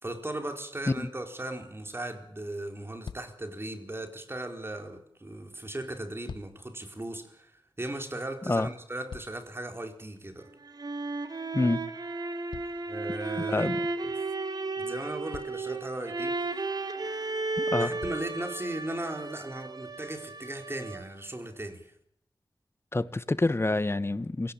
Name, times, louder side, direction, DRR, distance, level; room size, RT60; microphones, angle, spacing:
voice 1, 0.0-10.5 12.9-13.7 14.0-14.1 14.8-16.6 17.8-21.9, right 1 dB, 30° right, 4.4 m, -37 dB
sound 1, 3.0-3.5 5.9-6.7 8.6-9.7 12.5-13.5 14.7-14.8 15.3-15.8 17.2-17.3 18.0-18.4 19.2-19.3, left 6 dB, 85° left, 0.9 m, -46 dB
sound 2, 10.4-21.3, right 3 dB, 60° right, 2.7 m, -34 dB
voice 2, 11.5-11.8 13.5-13.8 17.6-17.9 22.9-24.5, left 2 dB, 30° left, 1.3 m, -27 dB
26.5 x 17.5 x 8.8 m
wide cardioid pair, 60°, 8 cm